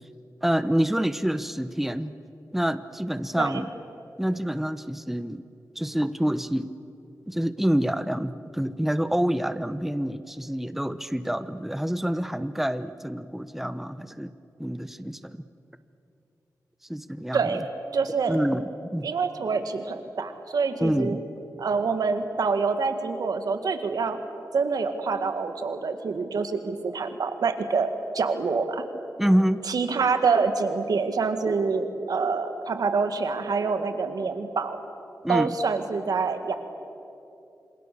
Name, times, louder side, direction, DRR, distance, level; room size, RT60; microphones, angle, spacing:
voice 1, 0.4-2.1 2.5-3.7 4.2-5.4 5.7-6.8 7.3-14.3 14.6-15.4 16.9-17.6 18.3-19.1 20.8-21.2 29.2-29.6 35.2-35.6, equal, 5° right, 12 dB, 0.9 m, -27 dB
voice 2, 17.3-17.6 17.9-18.4 19.0-21.2 21.6-24.2 24.5-28.8 29.7-34.8 35.3-36.5, right 4 dB, 80° right, 8 dB, 2.0 m, -26 dB
27.5 x 26.5 x 7.0 m, 2.7 s
cardioid pair, 60°, 6 cm